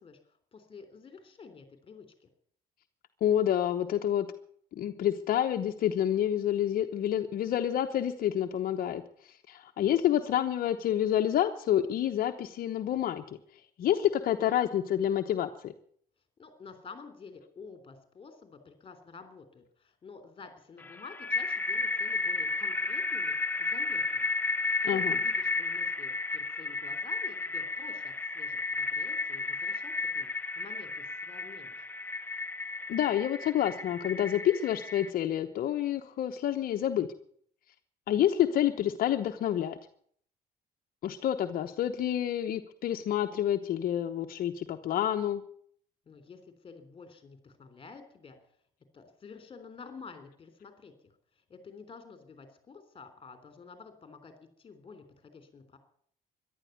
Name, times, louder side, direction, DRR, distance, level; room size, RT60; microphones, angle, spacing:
voice 1, 0.0-2.3 16.4-24.3 24.8-30.3 30.6-31.8 46.1-48.4 48.9-54.3 54.6-55.8, left 5 dB, 30° left, 8 dB, 3.5 m, -50 dB
voice 2, 3.2-4.3 4.8-13.4 13.8-15.7 24.9-25.2 32.9-37.1 38.1-39.8 41.0-45.4, left 11 dB, 60° left, 5 dB, 1.0 m, -28 dB
sound 1, 20.8-35.1, left 3 dB, 10° left, 0.9 m, -33 dB
14.0 x 11.0 x 9.4 m, 0.62 s
cardioid pair, 110°, 17 cm